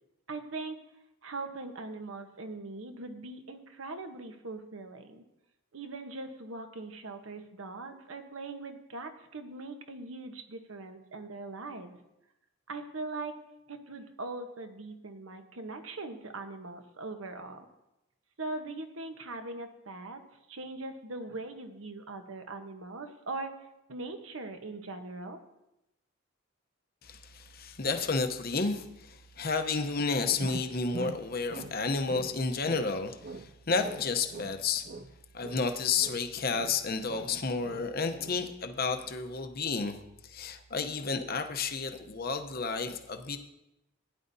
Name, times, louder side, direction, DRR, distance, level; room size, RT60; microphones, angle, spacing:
voice 1, 0.3-0.8 1.2-5.2 5.7-12.0 12.7-13.3 13.7-17.7 18.4-20.2 20.5-23.5 23.9-25.4, right 3 dB, 80° right, 6 dB, 1.1 m, -41 dB
voice 2, 27.0-34.9 35.3-40.0 40.2-43.4, left 4 dB, 45° left, 7 dB, 0.8 m, -31 dB
sound 1, 30.4-31.8 32.1-32.9 33.2-35.2 35.4-37.4 37.6-37.9 38.2-38.5, right 3 dB, 45° right, 0.5 m, -43 dB
16.0 x 10.0 x 2.7 m, 0.89 s
head